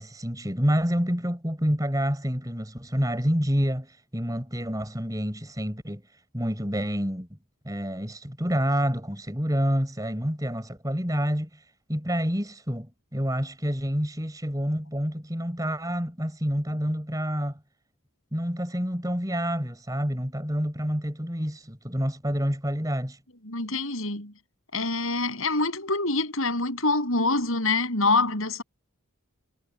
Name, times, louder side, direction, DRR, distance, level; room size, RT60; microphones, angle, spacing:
voice 1, 0.0-6.0 6.3-7.3 7.6-11.6 11.9-17.6 18.3-23.2, equal, 15° right, 4.2 m, -28 dB
voice 2, 23.5-24.3 24.7-28.6, left 3 dB, 65° left, 7.5 m, -25 dB
head